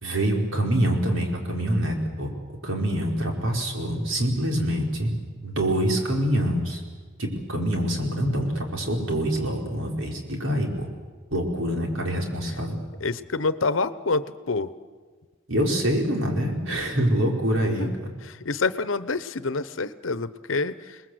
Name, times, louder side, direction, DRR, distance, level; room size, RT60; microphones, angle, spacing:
voice 1, 0.0-2.3 2.6-5.1 5.4-6.8 7.2-10.9 11.3-12.8 15.5-17.9, right 1 dB, 90° right, 1 dB, 5.0 m, -25 dB
voice 2, 13.0-14.7 17.8-17.9 18.2-21.0, left 3 dB, 80° left, 14 dB, 0.9 m, -27 dB
28.5 x 20.5 x 7.9 m, 1.5 s
head